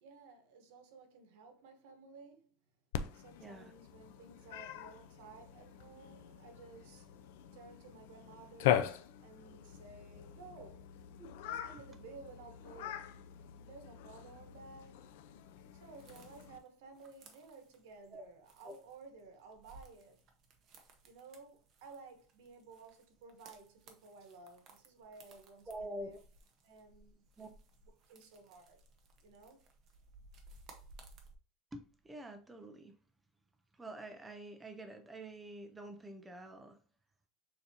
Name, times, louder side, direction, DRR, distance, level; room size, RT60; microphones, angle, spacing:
voice 1, 0.0-2.5 3.1-10.8 11.4-15.0 15.7-20.2 21.0-26.2 26.6-27.3 28.1-28.8 29.2-29.6, right 4 dB, 85° right, 1.1 m, -55 dB
Cat, 2.9-16.6, left 11 dB, 85° left, 0.4 m, -41 dB
voice 2, 3.4-3.7 10.6-10.7 11.2-11.3 11.7-11.8 18.1-18.2 18.6-18.7 25.7-26.2 27.4-27.5 31.7-32.9 33.7-36.8, right 1 dB, 10° right, 0.5 m, -47 dB
sound 1, 15.8-31.3, right 3 dB, 40° right, 0.9 m, -61 dB
6.7 x 2.7 x 2.8 m
cardioid pair, 155°, 0 cm